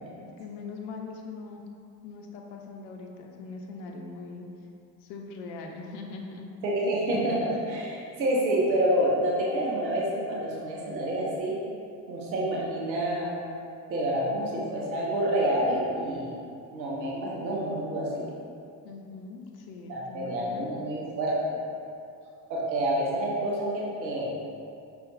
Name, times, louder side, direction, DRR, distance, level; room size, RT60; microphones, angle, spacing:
voice 1, 0.2-1.6 2.0-4.5 5.0-6.6 18.8-20.7, left 4 dB, 65° left, 1 dB, 0.6 m, -41 dB
voice 2, 6.6-11.6 12.1-13.4 13.9-16.3 16.7-18.3 19.9-21.6 22.5-24.3, right 1 dB, 90° right, -4 dB, 0.8 m, -28 dB
5.3 x 2.5 x 3.9 m, 2.5 s
figure-of-eight pair, 50°, 50 cm